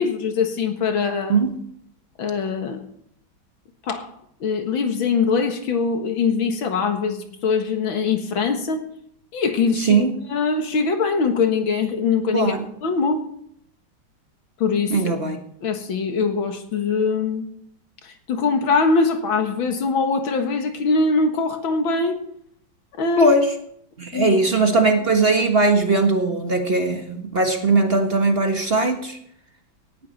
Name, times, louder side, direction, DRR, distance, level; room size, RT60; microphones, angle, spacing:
voice 1, 0.0-1.4 2.2-2.8 3.8-4.1 4.4-8.9 9.3-12.5 12.8-13.3 14.6-15.0 15.6-17.4 18.0-22.2 23.0-23.3 24.1-24.4, left 4 dB, 85° left, 5 dB, 2.4 m, -22 dB
voice 2, 9.8-10.1 12.3-12.6 14.9-15.4 23.2-23.5 24.0-29.2, right 3 dB, 35° right, 4 dB, 1.5 m, -19 dB
18.0 x 11.0 x 4.2 m, 0.68 s
omnidirectional pair, 2.1 m